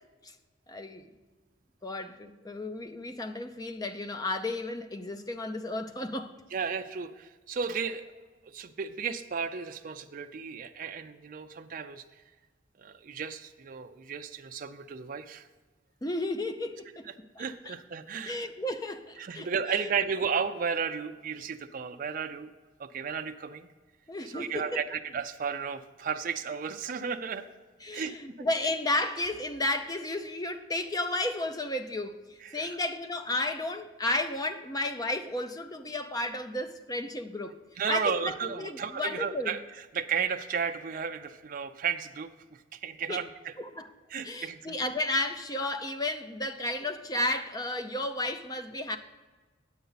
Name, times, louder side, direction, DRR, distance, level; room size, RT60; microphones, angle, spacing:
voice 1, 0.7-1.1 1.8-6.4 16.0-17.1 17.4-17.7 18.2-19.9 24.1-24.8 27.8-37.6 37.9-39.6 43.1-43.2 43.6-43.9 44.2-49.0, left 2 dB, 20° left, 0.6 m, -33 dB
voice 2, 6.5-8.1 8.5-12.0 12.8-15.5 17.4-18.4 19.2-22.5 22.8-23.7 24.3-27.4 27.9-28.1 32.4-32.8 37.8-39.6 39.9-43.5 44.1-44.9, right 6 dB, 45° right, 0.4 m, -33 dB
9.2 x 8.0 x 4.0 m
head